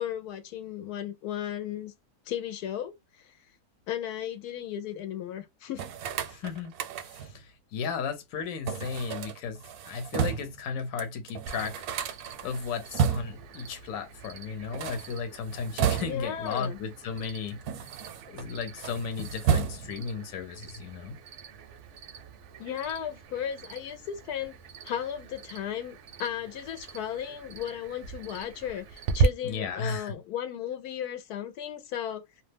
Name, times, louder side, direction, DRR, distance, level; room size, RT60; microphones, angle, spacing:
voice 1, 0.0-1.9 2.3-3.4 3.9-5.8 16.0-16.8 22.6-24.5 24.8-32.2, left 10 dB, 85° left, 1.1 m, -35 dB
sound 1, 5.8-7.4 8.7-10.6 11.0-11.1 11.3-13.5 14.6-16.4 17.2-18.5 18.8-20.1, right 7 dB, 80° right, 1.1 m, -32 dB
voice 2, 6.3-6.7 7.0-11.9 12.4-17.9 18.3-21.2 29.4-30.2, left 5 dB, 70° left, 1.1 m, -35 dB
Cricket, 11.4-29.2, right 6 dB, 65° right, 0.8 m, -39 dB
2.7 x 2.1 x 3.2 m
omnidirectional pair, 1.6 m